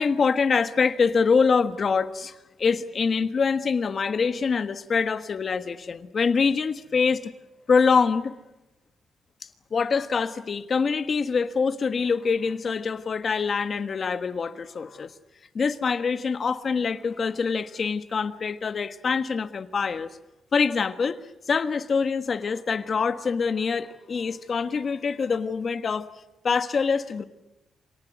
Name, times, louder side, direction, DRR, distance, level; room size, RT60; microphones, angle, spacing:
voice 1, 0.0-7.3 7.7-8.3 9.7-15.1 15.5-20.1 20.5-21.2 21.5-26.1 26.4-27.2, left 5 dB, 50° left, 11 dB, 1.4 m, -25 dB
26.5 x 19.0 x 9.4 m, 0.99 s
cardioid pair, 80°, 0 cm